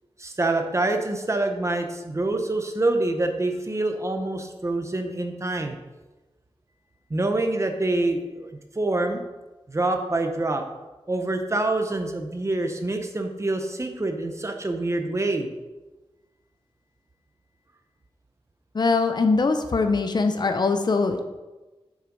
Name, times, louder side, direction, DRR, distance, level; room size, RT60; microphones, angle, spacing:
voice 1, 0.2-5.8 7.1-9.2 9.7-10.6 11.1-15.5, right 2 dB, 30° right, 5 dB, 1.0 m, -26 dB
voice 2, 18.7-21.2, left 4 dB, 45° left, 7 dB, 0.7 m, -22 dB
7.6 x 6.5 x 5.3 m, 1.1 s
wide cardioid pair, 115°, 10 cm